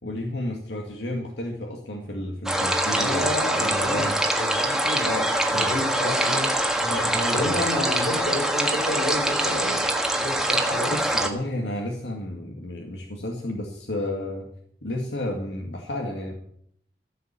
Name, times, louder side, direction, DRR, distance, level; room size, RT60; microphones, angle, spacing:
voice 1, 0.0-4.2 5.0-5.8 6.8-7.6 10.9-14.5 14.8-16.3, left 1 dB, 90° left, 0 dB, 2.2 m, -32 dB
sound 1, 2.5-11.3, right 1 dB, 5° right, 1.5 m, -24 dB
voice 2, 2.9-4.0 4.4-5.1 5.5-6.5 7.3-9.8 10.1-10.9, left 1 dB, 60° left, -1 dB, 6.1 m, -30 dB
15.0 x 7.3 x 8.9 m, 0.68 s
head